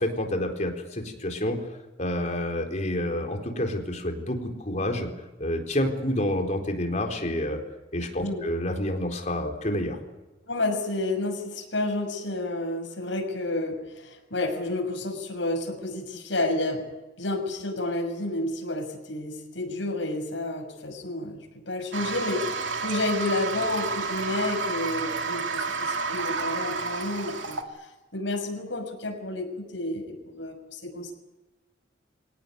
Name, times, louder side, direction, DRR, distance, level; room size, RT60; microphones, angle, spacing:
voice 1, 0.0-1.6 2.0-5.1 5.4-7.6 7.9-10.0, left 1 dB, 40° left, 3 dB, 4.1 m, -28 dB
voice 2, 10.5-16.8 17.2-31.1, left 2 dB, 80° left, 2 dB, 6.5 m, -30 dB
Toilet flush, 21.9-27.6, right 4 dB, 85° right, 2.3 m, -30 dB
24.0 x 18.0 x 9.4 m, 1.1 s
head